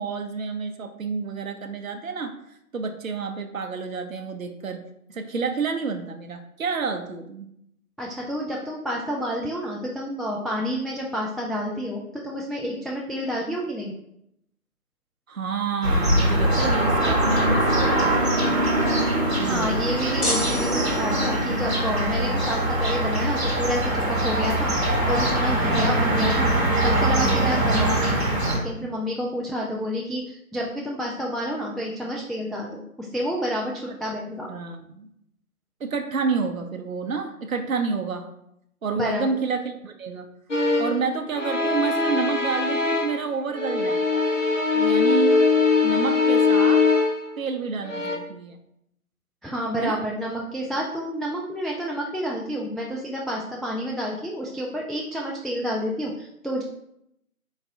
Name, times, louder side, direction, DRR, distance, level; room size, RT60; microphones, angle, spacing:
voice 1, 0.0-2.3 2.7-4.8 5.1-7.5 15.3-18.2 19.4-19.8 33.9-34.0 34.5-35.1 35.8-38.3 38.8-40.3 40.8-44.2 44.7-45.4 45.8-46.9 47.4-48.6 49.8-50.0, right 4 dB, 65° right, 6 dB, 0.5 m, -29 dB
voice 2, 8.0-13.9 19.4-24.7 25.1-26.5 26.8-34.5 38.9-39.3 49.4-56.6, equal, ahead, -3 dB, 0.3 m, -29 dB
sound 1, 15.8-28.6, right 1 dB, 45° right, 1.0 m, -22 dB
sound 2, 20.2-21.6, left 1 dB, 80° left, 1.1 m, -29 dB
sound 3, 40.5-41.1 41.3-43.3 43.5-47.3 47.8-48.2, left 4 dB, 55° left, 0.7 m, -21 dB
3.9 x 2.5 x 3.8 m, 0.76 s
figure-of-eight pair, 170°, 45 cm